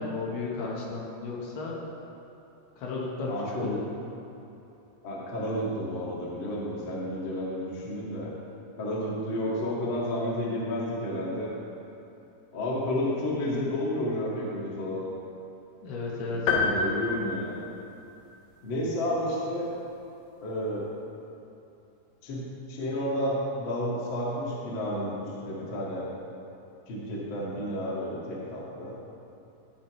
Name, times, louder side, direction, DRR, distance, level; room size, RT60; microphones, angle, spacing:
voice 1, 0.0-1.7 2.8-3.3 3.6-3.9 15.8-16.5, left 3 dB, 70° left, -3 dB, 3.1 m, -33 dB
voice 2, 3.3-3.8 5.0-8.3 8.8-11.5 12.5-15.0 16.3-17.6 18.6-19.7 20.4-20.9 22.2-26.1 26.9-28.9, left 1 dB, 40° left, -6 dB, 1.9 m, -31 dB
sound 1, 16.5-18.3, left 4 dB, 85° left, 3.4 m, -28 dB
19.0 x 8.7 x 3.2 m, 3.0 s
omnidirectional pair, 5.0 m